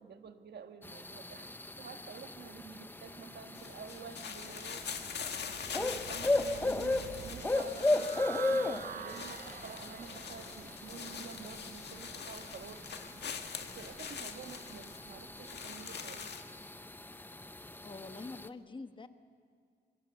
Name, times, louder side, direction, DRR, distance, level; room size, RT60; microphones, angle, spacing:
voice 1, 0.0-12.8 13.6-16.3, right 6 dB, 80° right, 7 dB, 1.6 m, -49 dB
sound 1, 0.8-18.5, left 2 dB, 10° left, 0.6 m, -37 dB
sound 2, 3.6-16.4, left 7 dB, 80° left, 1.6 m, -44 dB
sound 3, 4.5-16.4, right 9 dB, 60° right, 0.6 m, -49 dB
voice 2, 17.8-19.1, left 3 dB, 30° left, 9 dB, 1.2 m, -45 dB
24.5 x 24.0 x 8.0 m, 2.1 s
wide cardioid pair, 135°, 17 cm